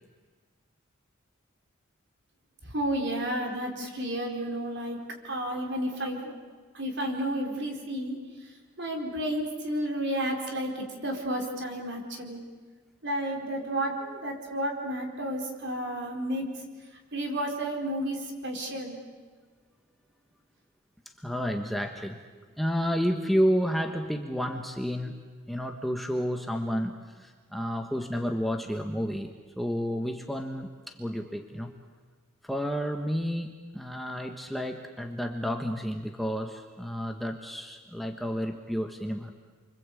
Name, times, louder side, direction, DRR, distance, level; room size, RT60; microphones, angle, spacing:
voice 1, 2.6-6.3 6.7-8.5 8.8-12.4 13.0-16.5 17.1-19.0, right 1 dB, 55° right, 2 dB, 4.4 m, -32 dB
voice 2, 21.0-22.2 22.6-25.1 25.5-31.7 32.4-39.3, equal, ahead, 3 dB, 1.2 m, -31 dB
28.5 x 25.0 x 8.4 m, 1.5 s
head